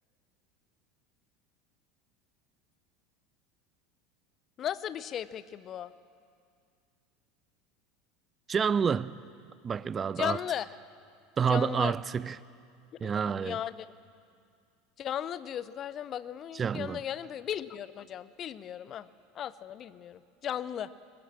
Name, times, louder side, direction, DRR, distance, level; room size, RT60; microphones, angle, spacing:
voice 1, 4.6-5.9 10.2-10.7 11.4-11.9 13.0-13.9 15.0-19.1 19.3-20.9, left 10 dB, 35° left, 16 dB, 0.7 m, -36 dB
voice 2, 8.5-9.2 9.6-10.4 11.4-12.4 13.0-13.6 16.5-17.0, right 6 dB, 25° right, 19 dB, 0.5 m, -28 dB
22.0 x 21.0 x 7.5 m, 2.3 s
figure-of-eight pair, 75°, 0 cm